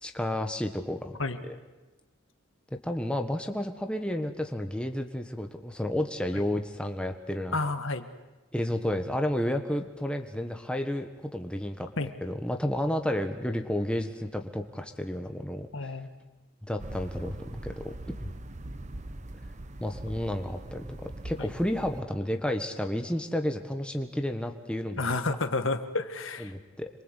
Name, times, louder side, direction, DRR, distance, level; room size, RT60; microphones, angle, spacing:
voice 1, 0.0-1.6 2.8-7.6 8.5-11.9 12.2-15.9 16.7-17.9 18.2-18.3 19.8-25.1 26.4-26.9, left 1 dB, 5° left, 5 dB, 1.4 m, -31 dB
voice 2, 7.5-8.0 12.0-12.1 15.7-16.1 25.0-26.5, left 3 dB, 65° left, 8 dB, 1.7 m, -30 dB
sound 1, 16.8-22.0, right 1 dB, 35° right, 0.9 m, -41 dB
27.0 x 23.5 x 8.3 m, 1.1 s
head